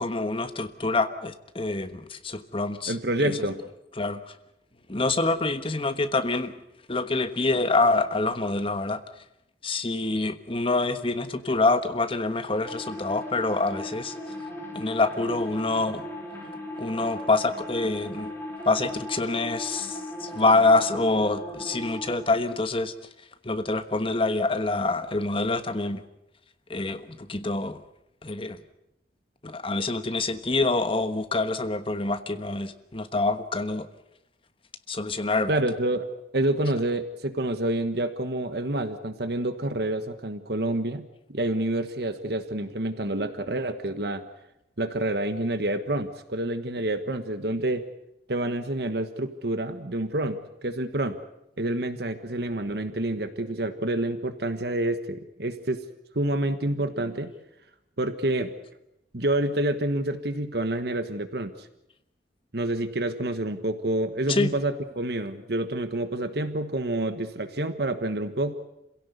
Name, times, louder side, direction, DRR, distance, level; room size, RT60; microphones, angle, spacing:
voice 1, 0.0-3.5 4.0-4.2 4.9-6.5 6.9-9.0 9.6-14.1 14.7-16.0 16.8-18.3 18.6-22.9 23.4-26.0 26.7-27.8 28.2-28.6 29.4-33.9 34.9-35.5 64.3-64.5, left 3 dB, 30° left, 9 dB, 1.3 m, -26 dB
voice 2, 2.9-3.6 35.5-44.3 44.8-47.9 48.3-51.2 51.6-55.9 56.1-57.3 58.0-58.5 59.1-61.7 62.5-68.5, right 1 dB, 60° right, 10 dB, 1.4 m, -28 dB
sound 1, 12.6-22.2, left 1 dB, 15° left, 4.4 m, -38 dB
27.0 x 16.5 x 8.2 m, 0.86 s
head